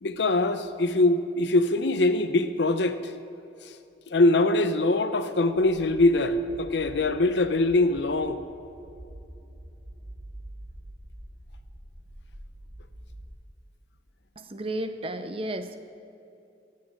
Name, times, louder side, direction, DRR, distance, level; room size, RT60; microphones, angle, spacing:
voice 1, 0.0-3.0 3.6-3.7 4.1-8.4, left 2 dB, 75° left, 9 dB, 0.7 m, -23 dB
sound 1, 5.5-13.3, right 1 dB, 50° right, 1.9 m, -46 dB
voice 2, 14.4-15.8, right 1 dB, 30° right, 9 dB, 0.6 m, -33 dB
16.0 x 7.6 x 6.4 m, 2.6 s
head